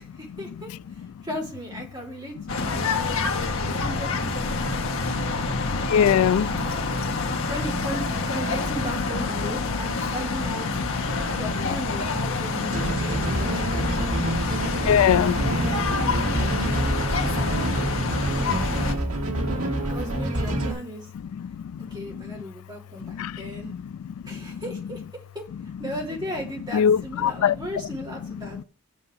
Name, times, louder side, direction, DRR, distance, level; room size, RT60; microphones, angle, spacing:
voice 1, 0.0-3.0 3.3-4.8 7.5-10.7 11.3-13.8 19.8-21.1 21.8-23.7 24.2-25.0 25.3-28.6, equal, 20° right, 3.4 m, -36 dB
sound 1, 2.5-19.0, left 3 dB, 70° left, 1.6 m, -27 dB
voice 2, 5.9-6.5 14.9-15.4 23.2-23.3 26.7-27.5, left 8 dB, 85° left, 0.3 m, -20 dB
sound 2, 12.7-20.7, right 1 dB, 85° right, 1.9 m, -27 dB
7.1 x 5.3 x 7.3 m
head